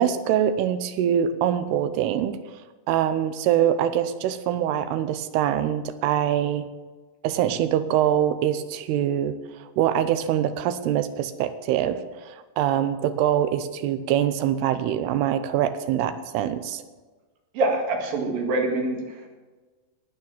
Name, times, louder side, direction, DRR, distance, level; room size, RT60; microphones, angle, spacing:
voice 1, 0.0-2.4 2.9-6.7 7.2-9.3 9.6-16.8, right 10 dB, 80° right, 11 dB, 2.5 m, -24 dB
voice 2, 17.5-19.3, right 2 dB, 60° right, 1 dB, 3.3 m, -25 dB
13.0 x 9.1 x 7.1 m, 1.3 s
omnidirectional pair, 5.2 m